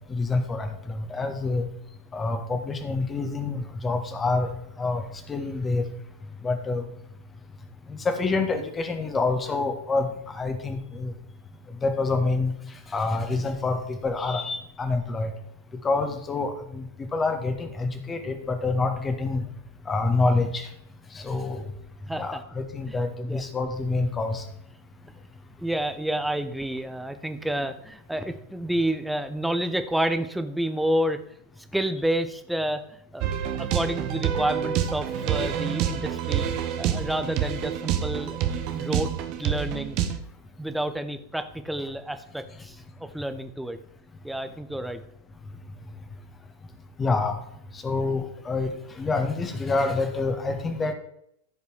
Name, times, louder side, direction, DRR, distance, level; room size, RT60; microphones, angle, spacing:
voice 1, 0.1-1.6 2.1-4.5 4.8-5.8 6.4-6.8 7.9-11.1 11.8-12.5 12.9-15.3 15.8-19.4 19.9-20.7 21.1-21.6 22.2-24.4 47.0-47.4 47.8-50.9, left 3 dB, 15° left, 6 dB, 1.7 m, -27 dB
voice 2, 22.1-22.4 22.9-23.0 23.3-23.4 25.6-31.2 31.7-32.9 33.1-33.3 33.6-36.5 36.8-38.4 38.7-39.1 39.4-40.0 40.6-43.8 44.2-45.0, right 1 dB, 5° right, 9 dB, 0.9 m, -29 dB
sound 1, 33.2-40.2, right 9 dB, 40° right, 1.0 m, -27 dB
14.5 x 5.3 x 4.7 m, 0.74 s
figure-of-eight pair, 90°, 0 cm